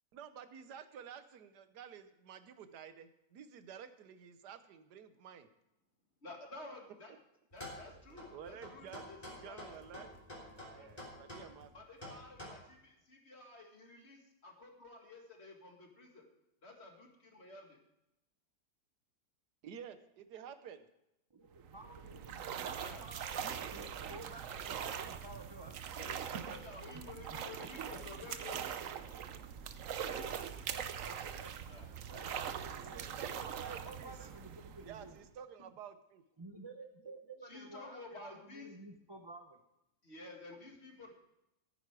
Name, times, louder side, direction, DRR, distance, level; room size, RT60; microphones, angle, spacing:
voice 1, 0.1-5.5 8.3-11.7 19.6-20.9 32.8-34.2 34.9-36.2, right 8 dB, 85° right, 11 dB, 1.5 m, -51 dB
voice 2, 6.2-7.1 7.5-9.7 10.7-10.9 11.7-16.3 16.6-17.8 22.8-23.0 26.0-28.6 28.9-29.1 31.7-31.9 37.4-38.7 40.0-41.1, left 2 dB, 40° left, 2 dB, 2.2 m, -52 dB
sound 1, 7.5-12.5, left 1 dB, 25° left, 3.4 m, -49 dB
voice 3, 21.3-25.7 26.5-26.6 26.9-28.6 30.0-35.2 35.6-35.7 36.4-39.6, right 2 dB, 25° right, 3 dB, 0.6 m, -53 dB
sound 2, 21.5-35.3, right 8 dB, 60° right, 1.0 m, -42 dB
14.5 x 9.7 x 4.7 m, 0.87 s
omnidirectional pair, 1.7 m